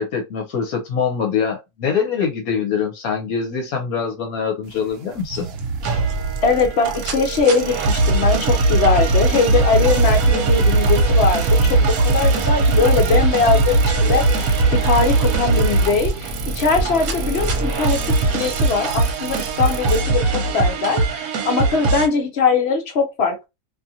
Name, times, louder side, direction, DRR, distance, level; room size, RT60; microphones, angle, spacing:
voice 1, 0.0-5.5, left 6 dB, 70° left, 1.1 m, -24 dB
sound 1, 4.6-20.0, right 3 dB, 90° right, 0.5 m, -30 dB
sound 2, 5.3-22.1, right 3 dB, 70° right, 1.1 m, -20 dB
voice 2, 6.4-20.2 20.5-21.0 21.4-23.5, left 4 dB, 55° left, 0.8 m, -21 dB
2.7 x 2.5 x 2.7 m
omnidirectional pair, 1.6 m